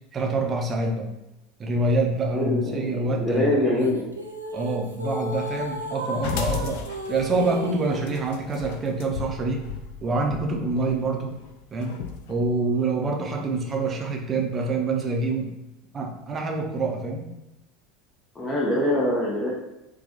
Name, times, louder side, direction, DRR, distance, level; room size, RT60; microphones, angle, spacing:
voice 1, 0.1-1.1 1.6-3.9 4.5-6.8 7.1-9.6 10.0-11.4 11.7-11.9 12.3-15.5 15.9-17.3, right 2 dB, 30° right, 1 dB, 0.6 m, -26 dB
voice 2, 2.3-4.0 10.7-10.9 18.4-19.5, left 1 dB, 20° left, -4 dB, 0.7 m, -24 dB
sound 1, 3.8-8.3, right 1 dB, 90° right, 0.4 m, -33 dB
sound 2, 6.2-12.3, left 8 dB, 60° left, 0.3 m, -35 dB
4.2 x 2.3 x 2.6 m, 0.93 s
figure-of-eight pair, 75°, 0 cm